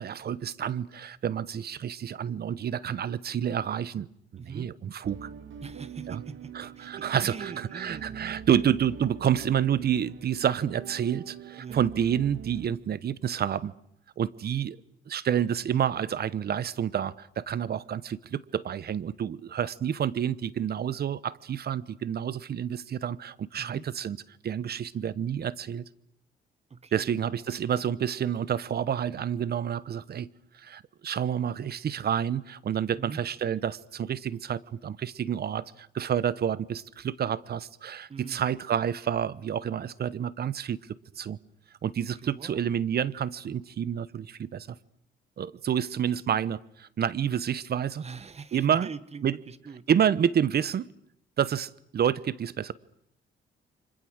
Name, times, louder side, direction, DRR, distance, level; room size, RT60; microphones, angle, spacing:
voice 1, 0.0-4.1 4.4-5.3 6.1-6.2 6.5-13.7 14.2-14.8 15.1-24.2 24.4-25.9 26.9-40.8 41.2-41.4 41.8-44.8 45.4-48.0 48.5-48.9 49.2-49.3 49.9-50.9 51.4-52.7, right 9 dB, 55° right, 1.0 m, -29 dB
voice 2, 4.4-4.7 5.6-8.2 8.6-8.7 11.6-11.8 23.6-23.9 26.7-27.1 33.0-33.2 38.1-38.4 42.2-42.6 48.0-49.8, right 5 dB, 30° right, 1.4 m, -42 dB
sound 1, 5.0-12.7, right 8 dB, 70° right, 2.0 m, -43 dB
29.5 x 25.5 x 6.5 m
cardioid pair, 90°, 20 cm